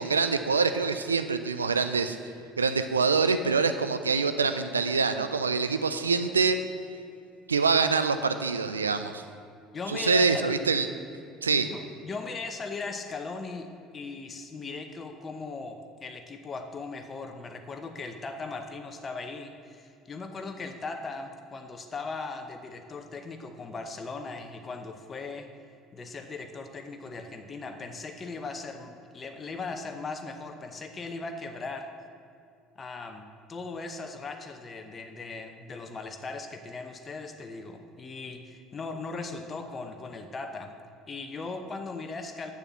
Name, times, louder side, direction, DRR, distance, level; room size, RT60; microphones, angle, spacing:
voice 1, 0.0-2.3 2.6-6.6 7.5-9.2 9.9-10.9 11.4-11.7, right 4 dB, 85° right, 10 dB, 0.3 m, -25 dB
voice 2, 9.7-10.6 11.5-25.5 25.9-31.9 32.8-40.7 41.1-42.5, left 3 dB, 30° left, 5 dB, 0.8 m, -38 dB
7.0 x 6.9 x 7.0 m, 2.5 s
figure-of-eight pair, 60°, 0 cm